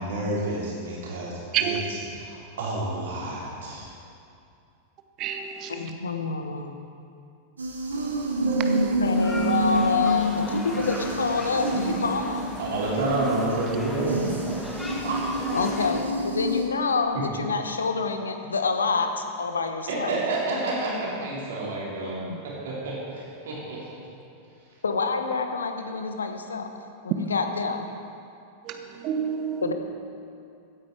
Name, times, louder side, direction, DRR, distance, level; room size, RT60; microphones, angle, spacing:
voice 1, 0.0-3.9 12.6-14.3 15.0-15.2 17.1-17.2 19.9-23.9, right 2 dB, 60° right, -5 dB, 3.8 m, -29 dB
voice 2, 5.2-5.7 8.4-8.9 27.1-27.2 28.6-29.7, right 9 dB, 40° right, 6 dB, 0.9 m, -29 dB
voice 3, 5.7-6.8 8.7-12.5 15.5-20.2 22.3-22.4 24.8-27.9 29.6-29.7, left 4 dB, 70° left, 6 dB, 1.0 m, -27 dB
sound 1, 7.6-16.7, right 1 dB, 75° right, 1.5 m, -28 dB
sound 2, 9.0-16.0, left 1 dB, 10° left, 1.6 m, -37 dB
15.5 x 9.6 x 4.8 m, 2.5 s
figure-of-eight pair, 90°, 0 cm